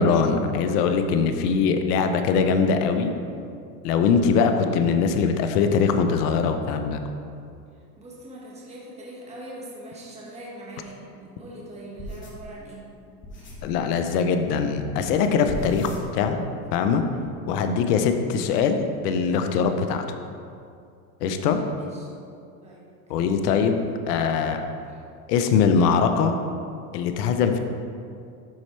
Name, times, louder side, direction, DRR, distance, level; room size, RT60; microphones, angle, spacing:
voice 1, 0.0-3.1 3.8-7.0 13.6-16.4 16.7-17.0 17.5-20.0 21.2-21.6 23.1-23.8 24.1-24.6 25.3-26.4 26.9-27.6, left 5 dB, 65° left, 7 dB, 0.9 m, -22 dB
voice 2, 8.0-12.8 13.3-13.6 17.1-17.3 21.4-22.1 22.6-22.9 23.2-23.3 24.9-25.0, right 1 dB, 15° right, -5 dB, 1.7 m, -42 dB
sound 1, 12.0-13.8 15.0-15.2 15.5-16.5 16.8-17.3, left 1 dB, 25° left, 1.1 m, -38 dB
12.0 x 4.3 x 3.3 m, 2.4 s
supercardioid pair, 115°, 49 cm